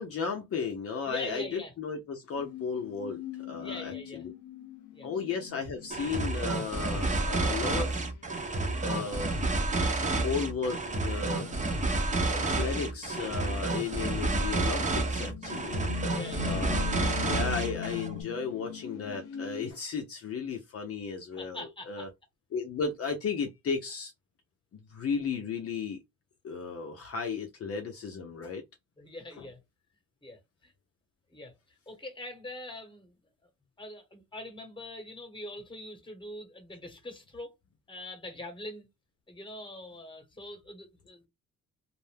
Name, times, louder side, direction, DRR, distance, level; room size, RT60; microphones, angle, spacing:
voice 1, 0.0-3.2 3.5-4.3 5.0-8.0 8.8-9.3 10.2-11.5 12.3-15.8 16.5-16.9 17.3-22.1 22.5-24.1 24.9-26.0 26.4-28.6 29.4-29.5, left 5 dB, 50° left, 0.7 m, -34 dB
voice 2, 1.0-1.7 3.6-4.2 4.9-5.1 16.1-16.7 21.4-22.1 29.0-29.6 30.2-30.7 31.3-31.5 31.9-33.2 33.8-37.5 37.9-38.9 39.3-41.3, left 1 dB, 15° left, 1.2 m, -43 dB
sound 1, 2.4-6.7 7.9-8.1 9.0-9.5 10.0-10.4 10.8-12.4 12.7-13.6 14.4-14.5 14.8-19.7, left 8 dB, 90° left, 0.6 m, -41 dB
sound 2, 5.9-18.1, right 2 dB, 25° right, 0.8 m, -30 dB
2.5 x 2.1 x 3.3 m
cardioid pair, 90°, 30 cm